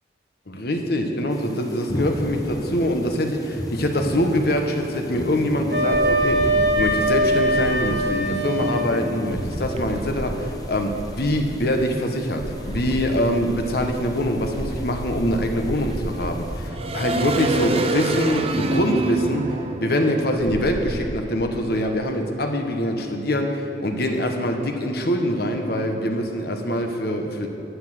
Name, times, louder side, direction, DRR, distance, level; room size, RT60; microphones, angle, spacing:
voice 1, 0.6-6.5 6.8-19.5 19.8-27.5, left 1 dB, 60° left, 4 dB, 1.2 m, -24 dB
sound 1, 1.3-16.7, equal, 20° left, 0.9 m, -35 dB
Wind instrument woodwind instrument, 5.7-8.9, right 1 dB, 75° right, 1.7 m, -21 dB
sound 2, 5.9-8.2 9.3-11.9 12.4-21.2, right 2 dB, 35° right, 0.6 m, -29 dB
11.5 x 8.7 x 7.8 m, 2.9 s
head